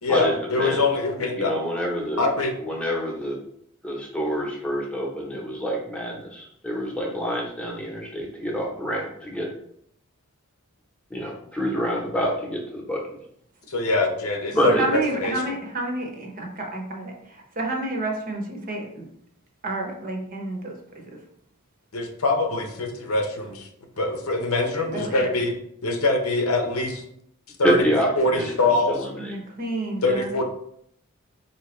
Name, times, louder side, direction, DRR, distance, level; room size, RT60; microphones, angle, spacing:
voice 1, 0.0-1.5 2.2-2.5 13.7-15.3 21.9-23.7 24.0-25.5 25.8-27.0 27.6-27.9 28.2-28.9 30.0-30.4, left 2 dB, 90° left, 3 dB, 0.8 m, -23 dB
voice 2, 1.3-2.3 2.6-3.4 3.8-9.5 11.1-13.0 14.5-14.8 27.6-28.5 28.9-29.3 30.0-30.1, equal, 5° left, -3 dB, 0.9 m, -27 dB
voice 3, 14.6-19.1 19.6-21.1 24.9-25.2 29.2-30.3, right 2 dB, 40° right, 1 dB, 0.8 m, -30 dB
4.6 x 2.8 x 3.1 m, 0.70 s
head